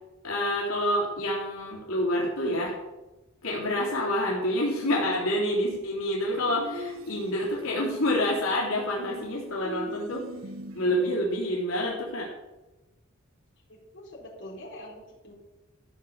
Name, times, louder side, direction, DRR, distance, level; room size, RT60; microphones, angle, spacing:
voice 1, 0.2-2.8 3.4-10.3 10.7-12.3, left 1 dB, 90° left, -4 dB, 3.4 m, -27 dB
sound 1, 6.5-7.7 9.0-11.2, equal, 75° right, 1.0 m, -41 dB
voice 2, 13.7-15.3, left 1 dB, 60° left, -3 dB, 4.4 m, -44 dB
14.5 x 6.4 x 7.2 m, 1.1 s
head